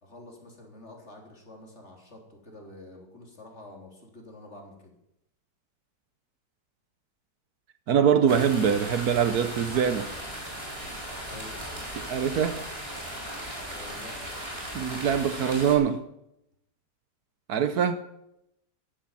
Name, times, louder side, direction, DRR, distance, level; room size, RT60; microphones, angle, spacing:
voice 1, 0.0-5.0 11.2-11.5 13.7-14.2, left 2 dB, 40° left, 3.8 m, -47 dB
voice 2, 7.9-10.1 12.1-12.6 14.7-16.0 17.5-18.1, right 7 dB, 65° right, 1.3 m, -23 dB
sound 1, 8.3-15.7, equal, 35° right, 5.2 m, -37 dB
14.5 x 12.0 x 7.3 m
omnidirectional pair, 1.8 m